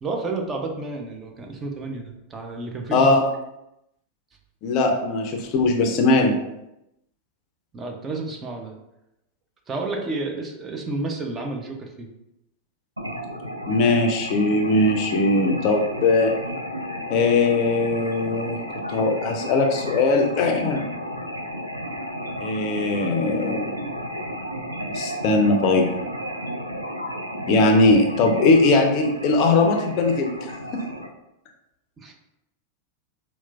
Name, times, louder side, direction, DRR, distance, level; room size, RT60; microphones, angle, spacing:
voice 1, 0.0-3.2 7.7-8.7 9.7-12.1 32.0-32.1, right 3 dB, 20° right, 2 dB, 0.5 m, -31 dB
voice 2, 2.9-3.2 4.6-6.4 13.7-16.4 17.1-18.6 18.9-20.9 22.4-23.8 24.9-25.9 27.5-30.8, left 3 dB, 40° left, 3 dB, 0.4 m, -20 dB
sound 1, 13.0-31.1, equal, 85° right, 0.3 m, -33 dB
4.3 x 2.0 x 2.3 m, 0.88 s
figure-of-eight pair, 90°, 0 cm